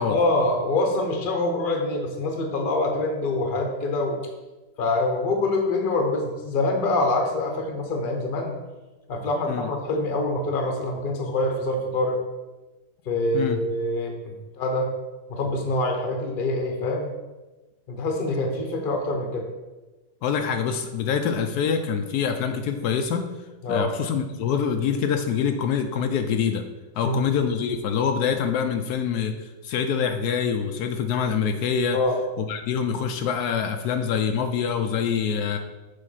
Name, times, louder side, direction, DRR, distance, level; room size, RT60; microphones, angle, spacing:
voice 1, 0.1-4.2 4.8-8.6 9.1-12.2 13.1-14.9 15.3-17.1 17.9-19.5 23.6-23.9 27.0-27.3 31.9-32.2, left 2 dB, 40° left, 3 dB, 1.0 m, -25 dB
voice 2, 20.2-23.2 23.7-26.6 27.0-32.0 32.4-35.6, left 7 dB, 80° left, 6 dB, 1.1 m, -25 dB
6.5 x 3.7 x 5.5 m, 1.1 s
omnidirectional pair, 1.7 m